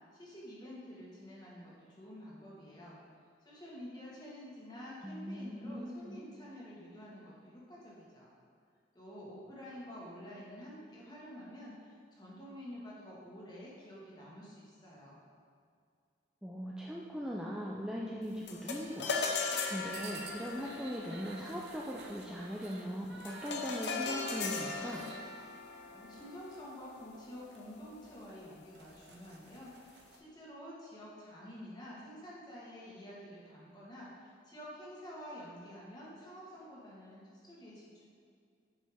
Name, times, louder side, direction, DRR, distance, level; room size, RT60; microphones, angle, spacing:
voice 1, 0.1-3.0 3.4-8.3 8.9-15.2 25.9-38.0, equal, 25° left, -6 dB, 1.5 m, -49 dB
voice 2, 5.0-6.2 16.4-19.1 19.7-25.1, equal, 5° right, -4 dB, 0.4 m, -40 dB
sound 1, 18.5-28.0, left 4 dB, 80° left, 0.6 m, -39 dB
sound 2, 19.9-25.2 26.1-26.6 27.0-27.1 27.5-27.6 28.0-28.1 28.6-30.2, right 3 dB, 70° right, 0.8 m, -51 dB
8.4 x 5.4 x 3.5 m, 2.3 s
head